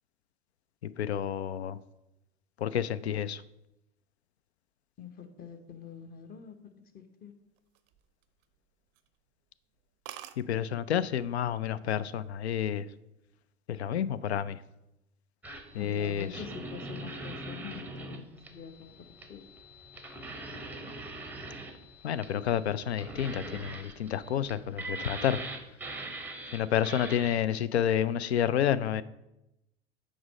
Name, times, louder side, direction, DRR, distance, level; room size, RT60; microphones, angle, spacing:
voice 1, 1.0-1.8 2.6-3.4 10.4-12.9 13.7-14.6 15.7-16.4 22.0-25.4 26.5-29.0, left 9 dB, 70° left, 16 dB, 0.5 m, -29 dB
voice 2, 5.0-6.5 6.9-7.3 15.7-19.0 19.3-19.4, left 7 dB, 25° left, 7 dB, 0.9 m, -45 dB
sound 1, 7.6-8.6 8.9-9.2 9.5-9.6 9.8-9.9 10.1-10.4 11.3-11.6 12.0-12.4, right 13 dB, 40° right, 0.5 m, -46 dB
sound 2, 15.4-27.4, right 2 dB, 5° right, 0.7 m, -42 dB
6.2 x 5.0 x 5.1 m, 0.90 s
figure-of-eight pair, 80°, 34 cm